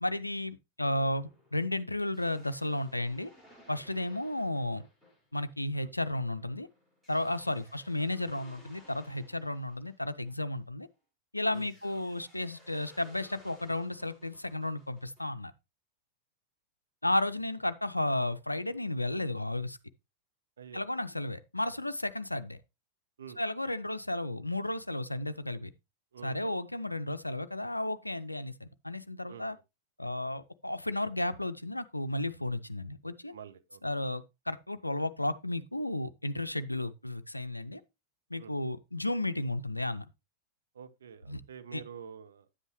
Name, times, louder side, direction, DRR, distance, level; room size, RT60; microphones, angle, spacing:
voice 1, 0.0-3.3 3.7-4.8 5.3-6.7 7.1-10.9 11.3-15.5 17.0-19.8 20.7-22.6 23.4-25.7 26.2-29.6 30.0-33.3 33.8-37.8 38.3-40.1 41.3-41.4 41.7-41.8, left 1 dB, 85° left, 0.5 m, -33 dB
sound 1, 1.2-10.9 11.5-15.2, left 1 dB, 10° right, 4.9 m, -60 dB
voice 2, 7.2-7.6 11.5-11.7 20.6-20.8 23.2-23.4 26.1-26.5 29.3-29.4 33.3-33.8 36.8-36.9 38.4-38.5 40.7-42.5, right 7 dB, 65° right, 0.9 m, -48 dB
9.7 x 8.0 x 3.0 m
figure-of-eight pair, 95°, 0 cm